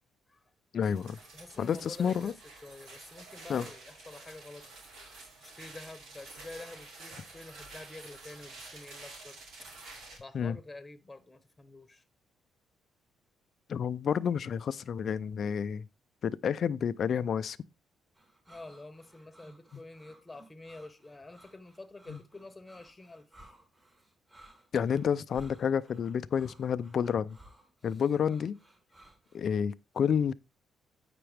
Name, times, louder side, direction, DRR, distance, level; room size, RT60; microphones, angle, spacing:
voice 1, 0.7-1.2 1.6-2.3 3.5-3.7 10.3-10.6 13.7-15.9 16.2-17.6 19.7-19.8 22.1-22.2 24.7-27.4 27.8-28.6 29.3-30.3, left 7 dB, 55° left, 0.5 m, -30 dB
sound 1, 0.8-10.2, right 3 dB, 75° right, 4.7 m, -49 dB
voice 2, 1.3-2.3 2.6-4.7 5.4-9.4 10.2-12.0 18.5-23.3 28.0-28.2, left 2 dB, 15° left, 1.3 m, -48 dB
sound 2, 18.2-29.4, right 1 dB, 20° right, 3.3 m, -58 dB
8.7 x 5.9 x 3.4 m
cardioid pair, 90°, 0 cm